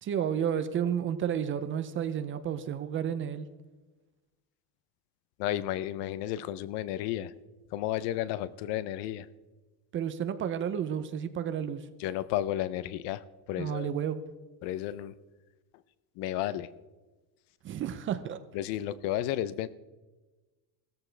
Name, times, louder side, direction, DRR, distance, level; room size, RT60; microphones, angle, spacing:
voice 1, 0.0-3.5 9.9-11.9 13.6-14.2 17.6-18.4, right 8 dB, 30° right, 10 dB, 0.5 m, -31 dB
voice 2, 5.4-7.3 7.7-9.3 12.0-13.9 14.6-15.1 16.2-16.7 18.5-19.7, left 13 dB, 65° left, 17 dB, 0.7 m, -32 dB
17.0 x 14.0 x 3.3 m, 1.2 s
cardioid pair, 170°, 44 cm